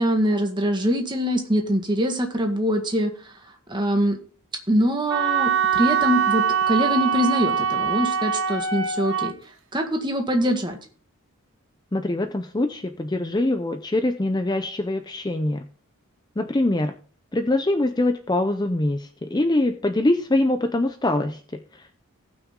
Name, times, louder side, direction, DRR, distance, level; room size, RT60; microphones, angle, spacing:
voice 1, 0.0-3.1 3.7-4.2 4.7-9.3 9.7-10.8, equal, 20° right, 4 dB, 1.6 m, -23 dB
Wind instrument woodwind instrument, 5.1-9.3, right 7 dB, 60° right, 1.4 m, -23 dB
voice 2, 11.9-15.6 16.4-16.9 17.3-21.4 21.7-21.9, left 1 dB, 20° left, 7 dB, 0.5 m, -23 dB
18.0 x 6.1 x 3.7 m, 0.42 s
head